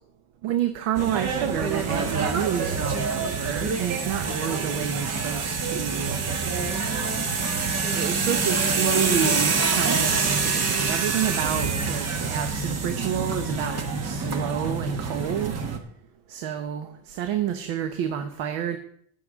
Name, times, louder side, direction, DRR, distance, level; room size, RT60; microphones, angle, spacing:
voice 1, 0.4-6.2 7.4-15.5 16.3-18.8, right 9 dB, 65° right, 7 dB, 1.1 m, -29 dB
sound 1, 1.0-15.8, right 4 dB, 30° right, 1.2 m, -26 dB
18.0 x 6.9 x 3.6 m, 0.65 s
cardioid pair, 160°, 50 cm